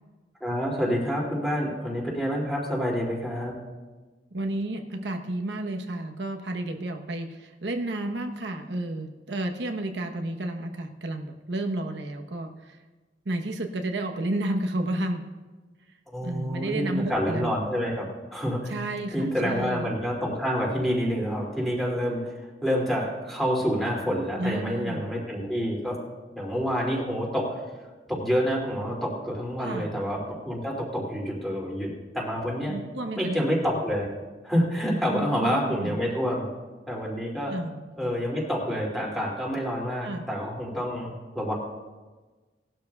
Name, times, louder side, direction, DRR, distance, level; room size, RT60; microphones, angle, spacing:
voice 1, 0.4-3.5 16.1-18.7 19.1-22.3 22.6-26.0 26.4-27.6 28.1-32.7 33.2-34.1 34.4-36.5 36.9-37.5 38.0-41.5, equal, ahead, -4 dB, 2.6 m, -28 dB
voice 2, 4.3-12.8 13.2-15.3 16.2-17.5 18.7-19.9 24.4-25.1 29.6-29.9 32.7-33.4 35.1-36.0 37.5-38.1 40.0-40.2, right 1 dB, 85° right, 3 dB, 1.0 m, -31 dB
18.5 x 12.0 x 2.4 m, 1.3 s
head